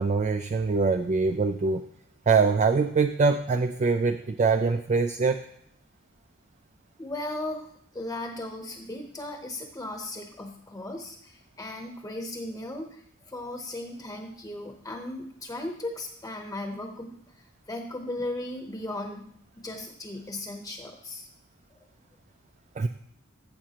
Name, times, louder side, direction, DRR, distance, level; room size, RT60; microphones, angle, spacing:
voice 1, 0.0-1.8 2.3-5.4 22.8-22.9, right 4 dB, 35° right, 7 dB, 0.4 m, -23 dB
voice 2, 7.0-7.7 7.9-17.1 17.7-19.2 19.6-21.3, left 1 dB, 15° left, 3 dB, 0.9 m, -36 dB
14.0 x 7.2 x 2.9 m, 0.71 s
head